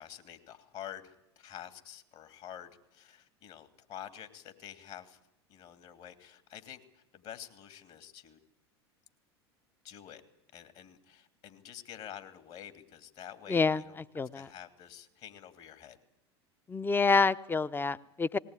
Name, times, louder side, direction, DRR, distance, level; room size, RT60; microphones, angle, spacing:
voice 1, 0.0-5.2 5.5-8.4 9.8-10.2 10.5-14.0 14.3-16.0, left 10 dB, 50° left, 9 dB, 2.9 m, -48 dB
voice 2, 13.5-13.8 14.1-14.5 16.7-18.4, left 4 dB, 15° left, 15 dB, 0.9 m, -27 dB
19.5 x 19.0 x 9.9 m, 0.81 s
hypercardioid pair, 80°, 14 cm